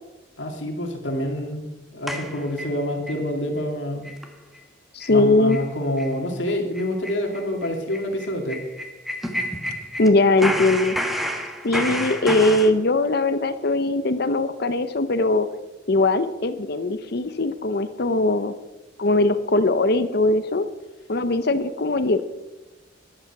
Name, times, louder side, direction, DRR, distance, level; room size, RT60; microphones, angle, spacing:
voice 1, 0.4-4.1 5.1-8.6, left 1 dB, 75° left, 3 dB, 2.5 m, -27 dB
sound 1, 2.1-3.2 3.6-3.7 4.0-4.3 4.5-4.6 5.0-5.2 5.5-5.7 6.0-6.1 6.4-10.1 10.4-12.7, equal, ahead, 1.3 m, -30 dB
voice 2, 4.9-5.6 10.0-11.0 11.6-15.5 15.9-18.5 19.0-20.6 21.1-22.2, left 2 dB, 55° left, 11 dB, 0.8 m, -20 dB
14.5 x 11.5 x 6.0 m, 1.0 s
head